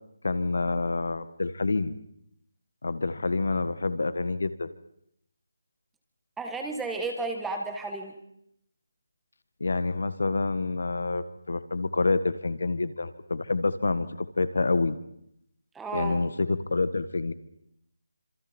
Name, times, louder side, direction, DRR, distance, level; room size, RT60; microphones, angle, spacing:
voice 1, 0.2-2.0 2.8-4.7 9.6-15.0 15.9-17.3, left 3 dB, 65° left, 13 dB, 1.6 m, -27 dB
voice 2, 6.4-8.1 15.7-16.2, right 3 dB, 5° right, 3 dB, 1.6 m, -32 dB
27.5 x 26.5 x 4.5 m, 0.73 s
figure-of-eight pair, 175°, 0 cm